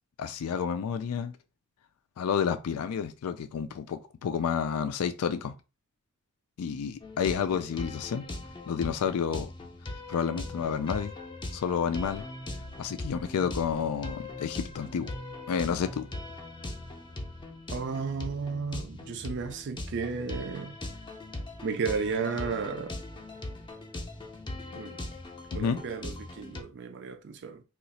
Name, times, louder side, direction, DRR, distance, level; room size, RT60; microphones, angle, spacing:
voice 1, 0.2-1.3 2.2-5.5 6.6-8.2 8.7-9.5 10.1-11.1 11.5-12.2 12.8-15.1 15.5-16.1 25.5-25.8, left 7 dB, 90° left, 0.4 m, -30 dB
sound 1, 7.0-26.6, left 2 dB, 20° left, 0.5 m, -40 dB
voice 2, 17.7-20.7 21.6-22.9 24.7-25.0 25.5-27.6, right 5 dB, 55° right, 0.4 m, -33 dB
2.8 x 2.4 x 4.1 m
head